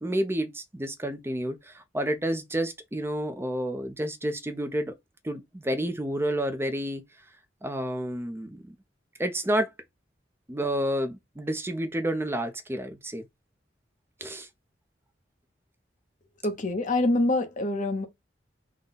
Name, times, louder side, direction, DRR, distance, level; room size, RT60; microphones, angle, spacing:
voice 1, 0.0-4.9 5.2-7.0 7.6-8.7 9.2-9.7 10.5-13.2 14.2-14.5, right 1 dB, 15° right, 0.5 m, -30 dB
voice 2, 16.4-18.1, left 2 dB, 45° left, 0.8 m, -25 dB
3.7 x 2.2 x 3.9 m
head